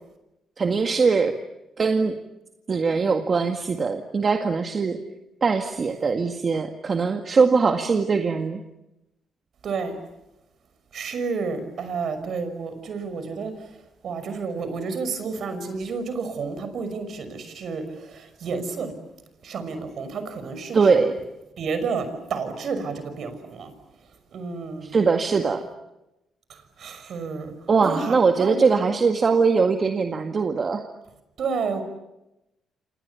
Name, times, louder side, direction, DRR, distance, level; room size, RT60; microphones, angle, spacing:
voice 1, 0.6-1.3 1.8-2.2 2.7-5.0 5.4-8.6 20.7-21.1 24.8-25.6 27.7-30.8, right 5 dB, 40° right, 5 dB, 1.9 m, -21 dB
voice 2, 9.6-10.0 10.9-13.8 14.0-18.9 19.4-21.0 21.6-23.7 24.3-24.9 26.5-27.6 27.8-28.7 31.4-31.8, right 4 dB, 60° right, 10 dB, 5.9 m, -30 dB
28.5 x 27.5 x 7.1 m, 0.93 s
cardioid pair, 90°, 0 cm